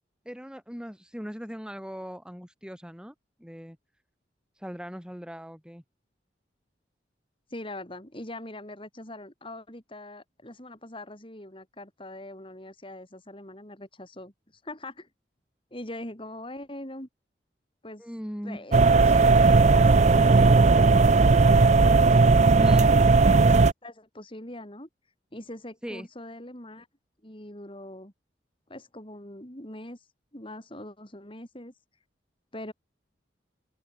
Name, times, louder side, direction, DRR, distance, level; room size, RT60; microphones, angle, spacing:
voice 1, 0.2-3.8 4.6-5.8 18.0-18.7 22.6-22.9 25.8-26.1, equal, 5° right, 4.6 m, -39 dB
voice 2, 7.5-14.3 14.6-15.1 15.7-17.1 17.8-18.0 18.4-24.9 25.3-26.9 27.2-28.1 28.7-30.0 30.3-31.7 32.5-32.7, left 1 dB, 30° left, 5.9 m, -42 dB
sound 1, 18.7-23.7, right 4 dB, 40° right, 0.4 m, -17 dB
open air
head